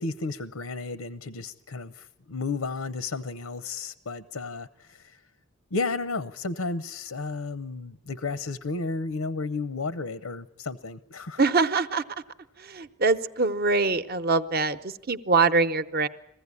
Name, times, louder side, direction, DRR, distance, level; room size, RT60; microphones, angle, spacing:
voice 1, 0.0-5.2 5.7-11.4, left 3 dB, 85° left, 13 dB, 0.8 m, -33 dB
voice 2, 11.4-12.0 12.6-16.1, right 4 dB, 45° right, 12 dB, 0.8 m, -24 dB
21.5 x 15.5 x 9.6 m, 0.80 s
head